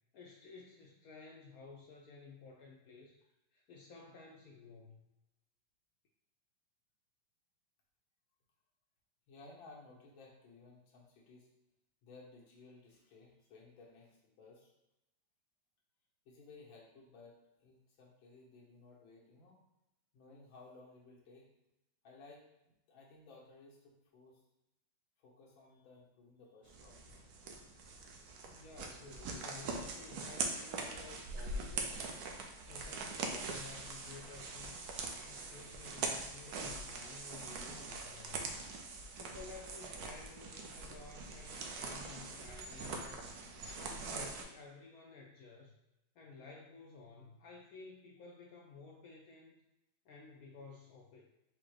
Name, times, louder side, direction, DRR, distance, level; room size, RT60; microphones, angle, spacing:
voice 1, 0.1-3.2 3.5-5.0 28.4-32.1 32.6-34.8 35.3-38.6 39.2-43.3 43.7-45.7 46.2-49.6 50.0-51.3, left 4 dB, 70° left, -1 dB, 0.8 m, -54 dB
voice 2, 9.3-11.5 12.0-14.7 16.3-19.6 20.1-21.5 22.0-24.4 25.2-27.3, left 3 dB, 85° left, -3 dB, 1.8 m, -58 dB
sound 1, 26.7-44.4, right 3 dB, 70° right, 1.0 m, -43 dB
4.9 x 2.1 x 4.7 m, 0.91 s
omnidirectional pair, 2.1 m